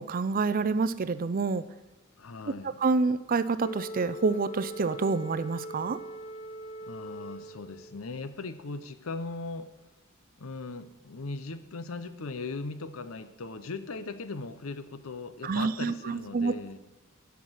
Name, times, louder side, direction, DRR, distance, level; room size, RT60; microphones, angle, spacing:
voice 1, 0.0-1.6 2.8-6.0 15.4-16.5, right 4 dB, 40° right, 14 dB, 0.4 m, -27 dB
voice 2, 2.2-2.7 6.8-9.7 10.4-16.8, left 3 dB, 75° left, 12 dB, 0.7 m, -39 dB
Wind instrument woodwind instrument, 3.6-8.0, right 1 dB, 30° left, 0.5 m, -41 dB
12.0 x 5.9 x 6.3 m, 1.1 s
head